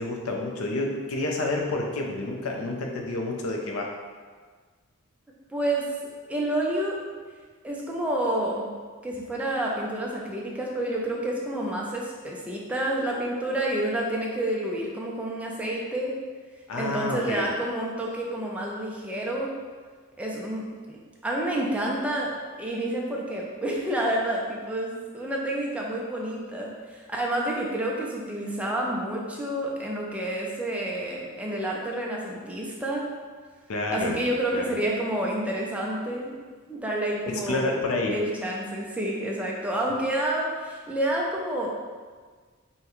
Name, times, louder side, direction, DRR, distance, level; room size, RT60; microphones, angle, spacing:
voice 1, 0.0-3.9 16.7-17.5 33.7-34.2 34.5-34.8 37.3-38.2, left 2 dB, 80° left, 1 dB, 0.6 m, -29 dB
voice 2, 5.5-5.9 6.3-7.0 7.6-8.7 9.0-16.1 16.7-19.5 20.2-21.0 21.2-33.1 33.9-36.4 36.7-37.8 38.1-41.7, right 1 dB, 5° right, -3 dB, 0.5 m, -29 dB
5.5 x 2.2 x 3.0 m, 1.5 s
head